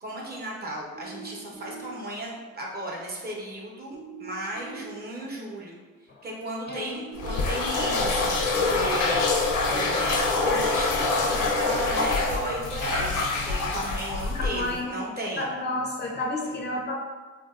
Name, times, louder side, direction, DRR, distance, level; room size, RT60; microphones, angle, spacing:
voice 1, 0.0-5.8 6.2-15.5, right 1 dB, 30° right, -3 dB, 0.8 m, -35 dB
sound 1, 0.9-1.9 3.9-4.9 6.9-7.9, right 6 dB, 85° right, 0.9 m, -42 dB
sound 2, 7.2-14.8, left 3 dB, 85° left, 0.6 m, -25 dB
voice 2, 14.4-14.9 15.4-16.9, left 2 dB, 35° left, 0 dB, 0.4 m, -31 dB
3.7 x 2.5 x 2.3 m, 1.4 s
cardioid pair, 90°, 30 cm